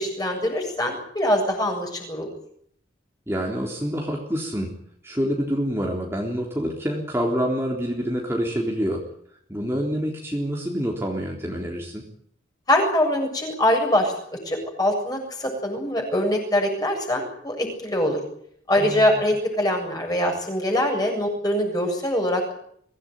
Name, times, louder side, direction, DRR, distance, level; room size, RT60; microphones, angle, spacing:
voice 1, 0.0-2.3 12.7-14.1 14.4-18.2 18.7-22.5, left 1 dB, 20° left, 2 dB, 7.6 m, -23 dB
voice 2, 3.3-4.8 5.0-9.0 9.5-12.1 18.8-19.2, equal, 15° right, -1 dB, 3.6 m, -27 dB
24.0 x 17.5 x 9.5 m, 0.68 s
head